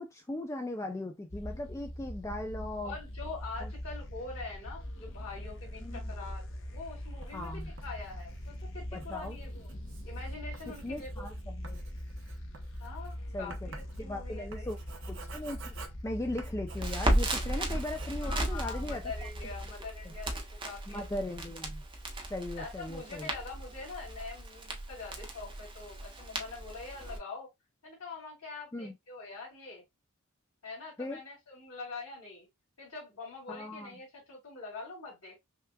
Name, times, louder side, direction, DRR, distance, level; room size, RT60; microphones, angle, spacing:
voice 1, 0.0-3.0 3.6-3.7 5.8-6.0 7.3-7.7 8.9-9.4 10.7-11.8 13.3-14.8 15.1-15.7 16.0-19.1 20.0-20.1 20.9-21.8 22.3-23.3 28.7-28.9 31.0-31.2 33.5-33.9, left 1 dB, 15° left, 0.3 m, -38 dB
sound 1, 1.3-19.7, equal, 60° left, 0.8 m, -42 dB
voice 2, 2.8-9.7 10.0-11.3 12.8-14.7 18.2-21.0 22.6-27.5 27.8-29.8 30.6-32.5 32.8-35.4, left 4 dB, 80° left, 2.6 m, -44 dB
Writing, 7.2-17.5 17.7-18.1, right 3 dB, 60° right, 0.7 m, -51 dB
Crackle, 16.7-27.2, right 1 dB, 25° right, 0.7 m, -35 dB
5.6 x 2.4 x 2.3 m
head